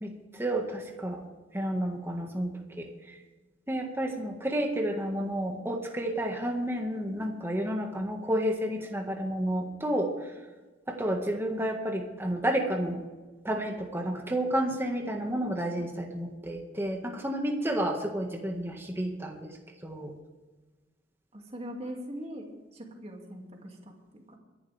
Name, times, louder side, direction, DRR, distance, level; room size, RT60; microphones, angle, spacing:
voice 1, 0.0-1.2 1.5-2.9 3.7-10.1 10.9-13.0 13.4-19.6 19.8-20.1, right 1 dB, 10° right, 1 dB, 1.7 m, -31 dB
voice 2, 21.3-24.4, equal, 30° right, 1 dB, 2.5 m, -42 dB
23.0 x 11.5 x 3.5 m, 1.2 s
head